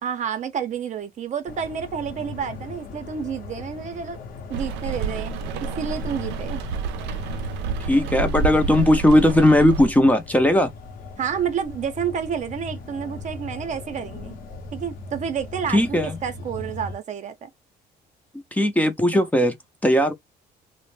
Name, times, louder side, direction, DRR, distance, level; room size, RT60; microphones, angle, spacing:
voice 1, 0.0-4.2 4.5-5.4 5.8-6.6 11.2-14.4 14.7-17.5, right 7 dB, 45° right, 0.6 m, -29 dB
sound 1, 1.4-17.0, left 3 dB, 55° left, 0.8 m, -39 dB
Rain, 4.5-9.9, right 4 dB, 90° right, 0.5 m, -29 dB
voice 2, 7.9-10.7 15.7-16.2 18.5-19.5 19.8-20.1, left 1 dB, 10° left, 0.5 m, -18 dB
2.5 x 2.1 x 3.1 m
cardioid pair, 110°, 17 cm